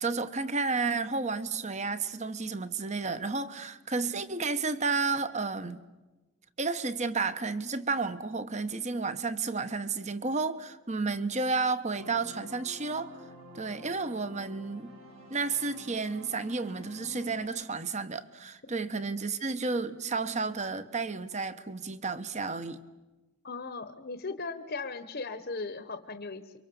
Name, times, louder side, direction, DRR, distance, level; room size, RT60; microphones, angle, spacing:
voice 1, 0.0-5.8 6.6-13.1 13.5-14.9 15.3-22.8, right 4 dB, 30° right, 1.1 m, -32 dB
sound 1, 11.9-17.4, left 1 dB, 65° right, 7.0 m, -49 dB
voice 2, 23.4-26.5, left 3 dB, 45° left, 1.1 m, -37 dB
29.5 x 24.0 x 7.1 m
head